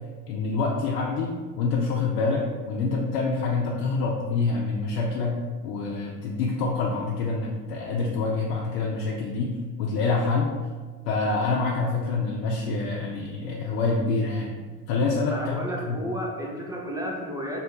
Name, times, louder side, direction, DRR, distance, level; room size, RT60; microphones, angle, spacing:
voice 1, 0.3-10.5 11.1-14.6 14.9-15.6 15.9-16.0, left 3 dB, 65° left, -3 dB, 0.8 m, -26 dB
voice 2, 15.3-17.6, equal, 10° right, -3 dB, 0.6 m, -32 dB
3.2 x 3.1 x 4.5 m, 1.5 s
hypercardioid pair, 80°, 47 cm